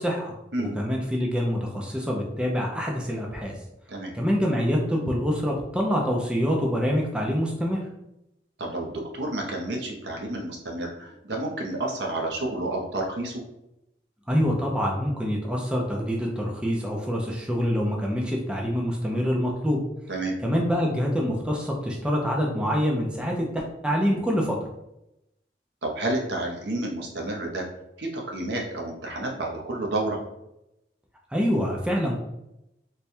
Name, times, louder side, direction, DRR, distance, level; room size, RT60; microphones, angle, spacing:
voice 1, 0.0-3.5 4.1-7.9 14.3-19.8 20.4-24.7 31.3-32.2, equal, 5° right, -1 dB, 0.5 m, -26 dB
voice 2, 8.6-13.4 20.1-20.4 25.8-27.7 28.0-30.2, right 2 dB, 75° right, 0 dB, 0.8 m, -30 dB
3.3 x 2.2 x 4.3 m, 0.86 s
head